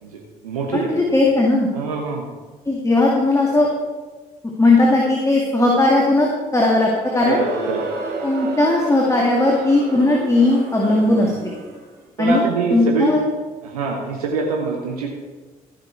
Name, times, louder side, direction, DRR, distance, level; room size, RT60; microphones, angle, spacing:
voice 1, 0.0-0.9 1.7-2.3 7.3-7.8 11.1-11.3 12.2-13.1 13.6-15.2, right 4 dB, 90° right, 0 dB, 1.0 m, -24 dB
voice 2, 0.7-1.7 2.7-3.7 4.6-7.4 8.2-11.3 12.2-12.4 12.7-13.2, left 2 dB, 15° left, -2 dB, 2.2 m, -17 dB
Crowd, 6.9-11.9, right 3 dB, 65° right, 3.0 m, -32 dB
15.0 x 6.5 x 4.7 m, 1.3 s
hypercardioid pair, 50°, 18 cm